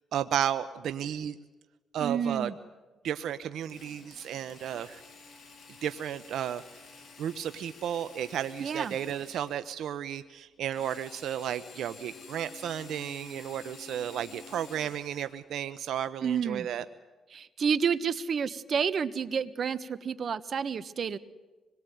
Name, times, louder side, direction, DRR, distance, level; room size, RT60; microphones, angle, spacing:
voice 1, 0.1-1.3 1.9-2.5 3.0-5.0 5.8-6.6 7.2-16.8, right 10 dB, 75° right, 12 dB, 0.9 m, -33 dB
voice 2, 2.0-2.5 8.6-9.0 16.2-16.7 17.3-21.2, right 7 dB, 50° right, 15 dB, 1.4 m, -30 dB
Drill, 3.7-9.8 10.7-15.4, left 4 dB, 35° left, 7.6 m, -51 dB
25.5 x 22.5 x 9.4 m, 1.2 s
cardioid pair, 90°, 0 cm